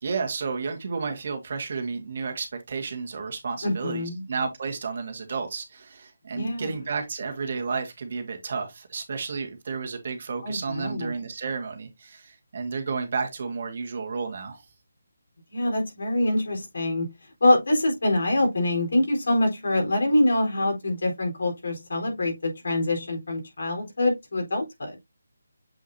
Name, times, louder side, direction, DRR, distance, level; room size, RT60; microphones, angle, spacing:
voice 1, 0.0-14.6, right 5 dB, 45° right, 1.7 m, -32 dB
voice 2, 3.6-4.2 6.3-6.7 10.4-11.1 15.5-17.1 17.4-25.0, left 1 dB, 65° left, 4.1 m, -25 dB
7.7 x 4.7 x 2.7 m
figure-of-eight pair, 165°, 0 cm